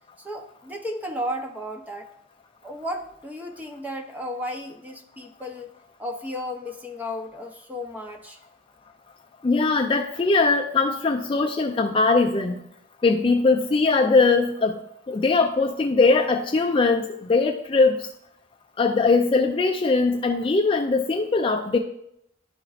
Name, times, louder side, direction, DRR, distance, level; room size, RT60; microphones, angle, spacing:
voice 1, 0.2-2.1 2.6-5.7 6.0-8.4, equal, 10° right, 3 dB, 0.6 m, -34 dB
voice 2, 9.4-12.6 13.0-14.8 15.1-18.1 18.8-21.8, left 3 dB, 25° left, 2 dB, 0.3 m, -21 dB
11.5 x 4.4 x 2.4 m, 0.77 s
head